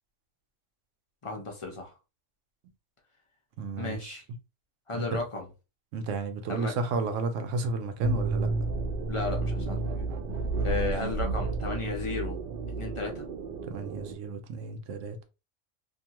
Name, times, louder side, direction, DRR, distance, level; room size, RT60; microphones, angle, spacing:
voice 1, 1.2-1.9 3.8-4.2 4.9-5.5 6.5-6.7 9.1-10.1 10.6-12.4 12.8-13.3, left 4 dB, 40° left, 0.4 m, -34 dB
voice 2, 3.6-4.2 4.9-5.2 5.9-8.5 10.5-10.9 13.7-15.2, right 3 dB, 85° right, 0.9 m, -32 dB
sound 1, 8.0-14.1, right 3 dB, 60° right, 0.6 m, -31 dB
2.6 x 2.3 x 2.8 m
omnidirectional pair, 1.3 m